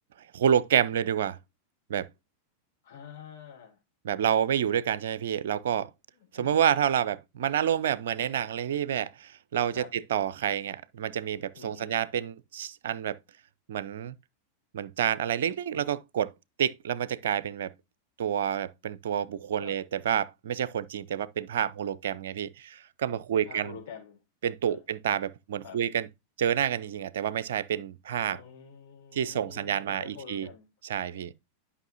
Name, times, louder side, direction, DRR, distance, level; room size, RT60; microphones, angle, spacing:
voice 1, 0.3-1.4 1.9-2.1 4.0-5.9 6.3-13.2 13.7-14.1 14.7-16.3 16.6-17.7 18.2-23.8 24.4-26.1 26.4-28.4 29.1-30.5 30.9-31.3, right 9 dB, 60° right, 0.5 m, -28 dB
voice 2, 2.8-3.8 6.3-6.6 9.7-9.9 11.5-12.0 15.7-15.9 19.6-19.8 23.3-24.2 24.6-24.8 25.6-25.8 28.3-30.7, left 7 dB, 55° left, 3.4 m, -47 dB
11.5 x 5.6 x 2.7 m
figure-of-eight pair, 90°, 0 cm